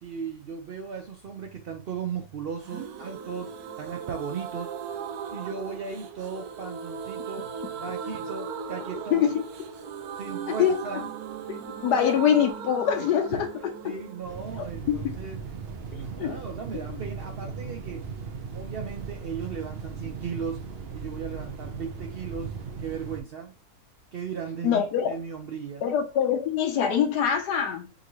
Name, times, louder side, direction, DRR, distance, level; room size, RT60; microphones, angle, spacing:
voice 1, 0.0-4.8 5.3-7.5 7.8-9.4 10.2-11.1 13.3-13.5 13.8-15.7 15.9-18.1 18.5-23.5 24.1-25.9, right 6 dB, 90° right, 0.5 m, -37 dB
sound 1, 2.6-16.2 16.5-16.6 16.8-16.9, right 7 dB, 75° right, 1.1 m, -38 dB
voice 2, 9.1-9.4 10.6-10.8 11.5-13.5 14.9-15.0 16.2-16.4 24.6-25.1 25.8-27.9, left 8 dB, 85° left, 1.3 m, -24 dB
sound 2, 14.2-23.2, right 5 dB, 55° right, 0.7 m, -37 dB
5.1 x 2.7 x 3.0 m
omnidirectional pair, 1.7 m